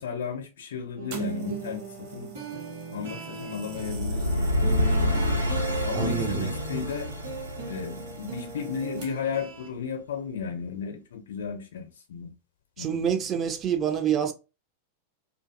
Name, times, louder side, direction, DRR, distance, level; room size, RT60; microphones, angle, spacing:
voice 1, 0.0-2.3 2.9-4.5 5.8-7.1 7.7-12.3 12.8-13.2, left 6 dB, 60° left, 0.5 m, -34 dB
sound 1, 1.0-9.7, right 4 dB, 60° right, 1.1 m, -38 dB
sound 2, 1.1-9.4 10.2-10.4, right 6 dB, 45° right, 0.8 m, -48 dB
sound 3, 3.7-8.8, left 1 dB, 85° right, 0.5 m, -27 dB
voice 2, 5.9-6.5 12.8-14.3, right 8 dB, 30° right, 0.4 m, -27 dB
2.5 x 2.4 x 2.4 m
figure-of-eight pair, 90°, 0 cm